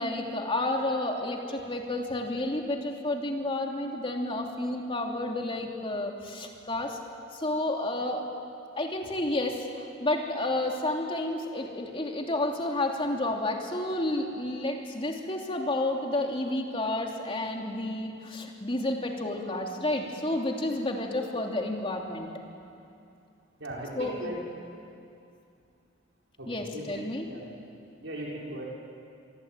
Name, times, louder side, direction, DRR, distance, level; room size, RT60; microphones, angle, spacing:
voice 1, 0.0-7.0 7.3-8.2 8.8-22.3 24.0-24.1 26.5-27.2, left 1 dB, 30° left, 1 dB, 3.0 m, -30 dB
voice 2, 23.6-24.4 26.4-26.9 27.2-27.4 28.0-28.7, right 1 dB, 80° right, -3 dB, 5.3 m, -38 dB
26.0 x 23.5 x 9.1 m, 2.6 s
head